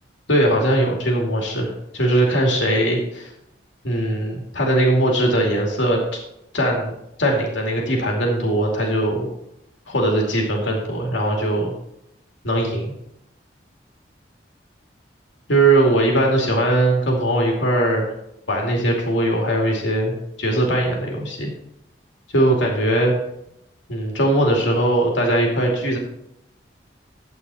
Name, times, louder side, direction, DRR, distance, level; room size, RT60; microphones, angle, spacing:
voice 1, 0.3-3.3 3.8-6.0 6.5-6.9 7.2-9.3 9.9-11.7 12.4-12.9 15.5-18.1 18.5-21.5 22.3-23.1 23.9-26.0, right 1 dB, 85° left, 0 dB, 2.5 m, -20 dB
11.0 x 8.3 x 4.2 m, 0.81 s
head